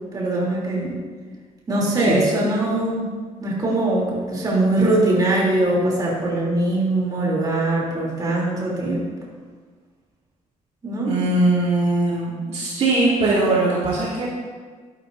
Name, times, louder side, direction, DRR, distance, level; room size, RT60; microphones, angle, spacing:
voice 1, 0.1-1.0 1.7-3.1 3.4-9.0 10.8-11.1, right 2 dB, 30° right, -4 dB, 3.2 m, -21 dB
voice 2, 11.0-14.3, right 2 dB, 55° right, -6 dB, 2.5 m, -20 dB
12.0 x 11.5 x 2.7 m, 1.5 s
cardioid pair, 140°, 14 cm